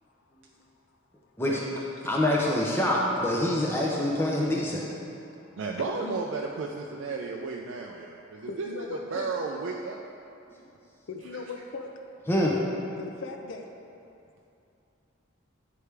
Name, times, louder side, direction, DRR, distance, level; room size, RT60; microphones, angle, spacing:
voice 1, 2.0-4.8 12.3-12.6, left 1 dB, 10° left, -4 dB, 0.5 m, -25 dB
voice 2, 5.6-10.0 11.3-11.4, right 4 dB, 65° right, 0 dB, 0.4 m, -34 dB
voice 3, 8.4-9.3 11.1-11.9 13.0-13.7, left 3 dB, 65° left, 3 dB, 0.5 m, -38 dB
9.5 x 4.8 x 3.3 m, 2.7 s
head